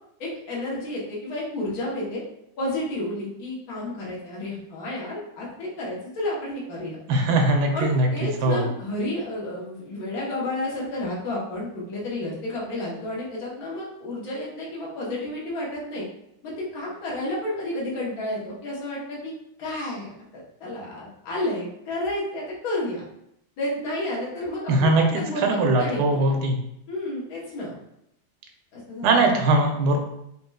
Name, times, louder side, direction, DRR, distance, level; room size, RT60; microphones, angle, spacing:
voice 1, 0.2-2.2 2.6-7.0 7.7-16.1 16.4-19.3 19.6-20.1 20.6-23.0 23.6-26.4 26.9-27.7 28.7-29.2, left 1 dB, 55° left, -5 dB, 1.4 m, -31 dB
voice 2, 7.1-8.1 8.4-8.6 24.7-26.6 29.0-30.0, right 2 dB, 70° right, 3 dB, 1.0 m, -20 dB
4.2 x 2.9 x 2.3 m, 0.78 s
omnidirectional pair, 2.2 m